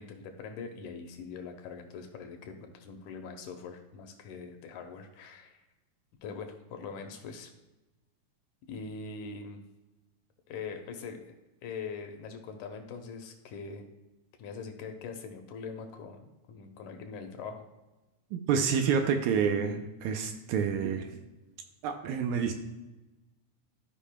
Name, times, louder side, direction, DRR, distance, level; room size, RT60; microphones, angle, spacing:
voice 1, 0.0-5.6 6.2-7.5 8.7-9.6 10.5-11.3 11.6-13.8 14.4-17.6, left 5 dB, 75° left, 5 dB, 2.1 m, -42 dB
voice 2, 18.3-21.0 21.8-22.5, right 6 dB, 80° right, 6 dB, 1.9 m, -28 dB
13.5 x 5.2 x 2.2 m, 1.1 s
omnidirectional pair, 3.6 m